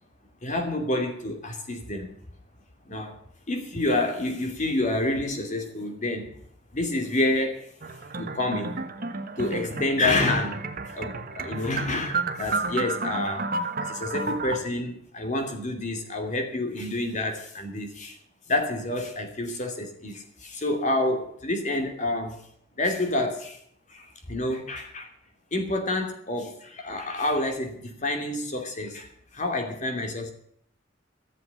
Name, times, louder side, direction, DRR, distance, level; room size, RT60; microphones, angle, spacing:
voice 1, 0.4-2.1 2.9-3.1 3.5-6.3 6.7-8.9 9.4-10.7 10.9-13.5 13.8-18.2 18.5-22.4 22.7-23.6 23.9-25.1 25.5-30.3, left 2 dB, 40° left, 5 dB, 2.8 m, -28 dB
sound 1, 7.8-14.6, right 3 dB, 50° right, 1.2 m, -32 dB
15.0 x 7.6 x 9.5 m, 0.66 s
head